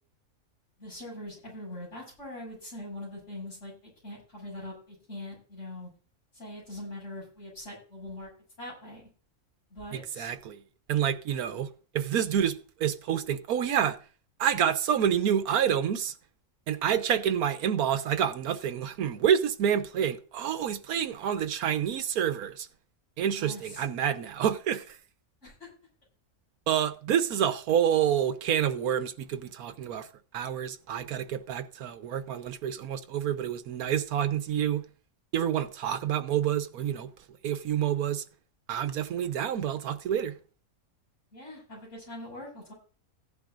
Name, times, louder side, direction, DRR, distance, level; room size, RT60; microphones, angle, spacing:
voice 1, 0.8-5.9 6.3-8.3 8.6-9.1 9.7-10.3 23.3-23.8 25.4-25.7 41.3-42.7, left 1 dB, 55° left, 7.4 m, -42 dB
voice 2, 9.9-10.6 10.9-11.7 11.9-14.0 14.4-16.1 16.7-22.7 23.2-25.0 26.7-30.1 30.3-34.8 35.3-37.1 37.4-38.2 38.7-40.3, right 9 dB, 85° right, 1.4 m, -28 dB
15.5 x 11.0 x 2.6 m
omnidirectional pair, 1.5 m